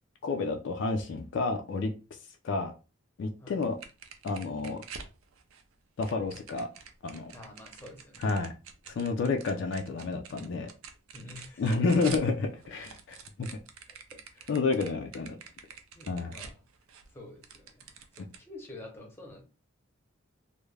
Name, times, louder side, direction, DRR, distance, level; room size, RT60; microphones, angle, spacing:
voice 1, 0.2-1.9 2.4-2.7 3.2-3.8 4.2-4.8 6.0-6.7 7.0-7.3 8.2-8.5 8.9-10.7 11.6-13.5 14.5-15.4 16.1-16.4, left 3 dB, 55° left, 0.3 m, -30 dB
sound 1, 3.6-5.6 6.0-12.3 12.6-17.1 17.4-18.4, right 6 dB, 80° right, 0.4 m, -47 dB
voice 2, 7.3-8.4 11.1-11.9 13.9-14.6 15.9-16.5 17.1-17.8 18.1-19.4, left 2 dB, 10° left, 0.6 m, -48 dB
2.3 x 2.1 x 3.1 m
head